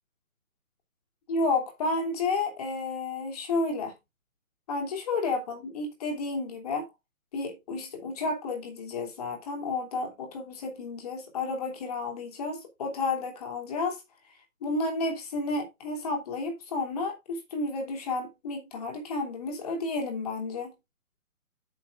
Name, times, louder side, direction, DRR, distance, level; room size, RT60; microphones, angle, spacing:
voice 1, 1.3-3.9 4.7-6.9 7.3-14.0 14.6-20.7, left 3 dB, 25° left, 2.8 m, -31 dB
9.4 x 6.7 x 3.7 m
figure-of-eight pair, 140°, 42 cm